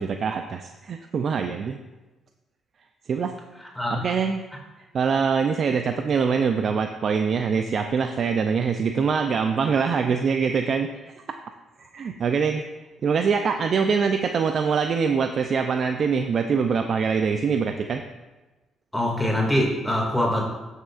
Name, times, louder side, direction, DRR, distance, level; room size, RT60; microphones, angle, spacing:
voice 1, 0.0-1.8 3.1-3.3 3.9-4.4 4.9-10.9 11.8-12.6 13.0-18.0, right 6 dB, 55° right, 6 dB, 0.4 m, -24 dB
voice 2, 3.6-4.1 18.9-20.6, left 1 dB, 5° left, -2 dB, 2.1 m, -24 dB
14.0 x 6.4 x 2.4 m, 1.1 s
cardioid pair, 90°, 0 cm